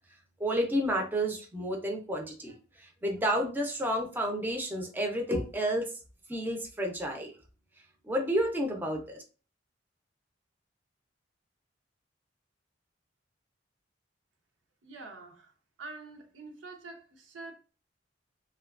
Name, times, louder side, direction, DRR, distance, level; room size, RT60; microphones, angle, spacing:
voice 1, 0.4-5.9 6.3-7.3 8.0-9.2, equal, 10° right, 0.4 m, -31 dB
voice 2, 14.8-15.5 15.8-17.5, right 3 dB, 90° right, 0.6 m, -46 dB
2.8 x 2.2 x 2.3 m
head